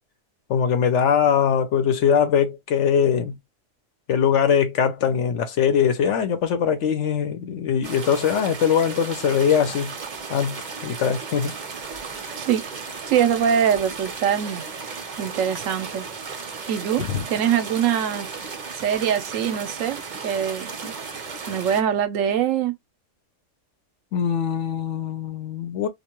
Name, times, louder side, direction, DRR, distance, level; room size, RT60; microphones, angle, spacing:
voice 1, 0.5-3.4 4.1-9.9 10.3-11.5 17.0-17.2 24.1-25.9, left 7 dB, 70° left, 0.9 m, -21 dB
sound 1, 7.8-21.8, right 5 dB, 45° right, 0.7 m, -35 dB
voice 2, 13.1-16.1 16.7-18.3 18.7-20.9 21.5-22.7, right 9 dB, 80° right, 0.9 m, -23 dB
2.4 x 2.1 x 2.9 m
omnidirectional pair, 1.3 m